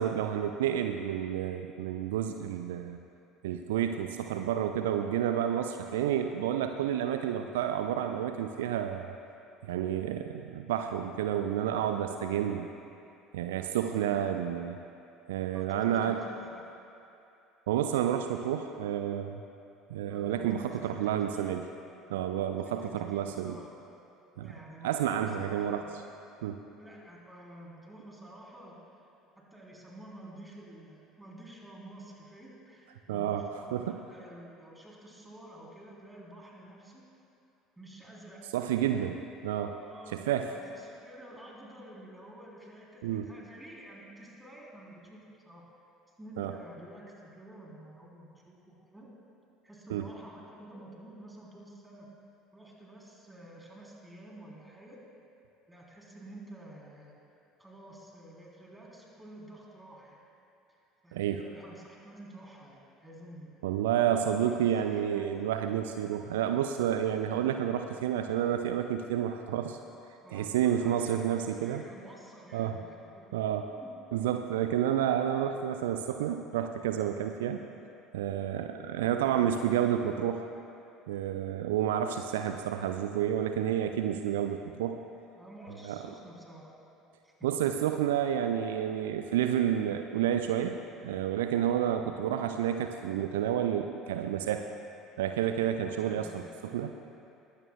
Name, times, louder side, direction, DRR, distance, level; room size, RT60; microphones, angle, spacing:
voice 1, 0.0-3.0 3.4-9.2 9.6-12.7 13.3-14.8 15.3-16.2 17.7-19.4 19.9-21.6 22.1-23.6 24.4-24.5 24.8-25.9 26.4-26.6 33.1-33.4 33.7-34.0 38.5-39.8 40.1-40.5 43.0-43.3 46.4-46.5 49.9-50.1 61.1-61.4 63.6-69.8 70.3-71.8 72.5-72.8 73.3-73.7 74.1-77.6 78.1-80.4 81.1-85.0 85.8-86.0 87.4-90.8 91.0-94.7 95.2-96.4 96.7-96.9, right 10 dB, 65° right, 7 dB, 0.4 m, -30 dB
voice 2, 13.9-14.6 15.5-16.7 20.1-21.6 22.6-23.8 24.4-25.9 26.8-28.8 29.4-37.1 37.8-38.5 39.8-45.6 46.2-49.1 49.6-52.1 52.5-55.0 55.7-57.1 57.6-60.2 60.7-60.8 61.0-63.6 64.3-65.5 70.2-73.5 73.8-74.3 85.4-86.8 87.2-87.7 95.9-96.7, right 1 dB, 10° right, -3 dB, 3.6 m, -50 dB
21.0 x 15.5 x 2.3 m, 2.8 s
figure-of-eight pair, 60°, 0 cm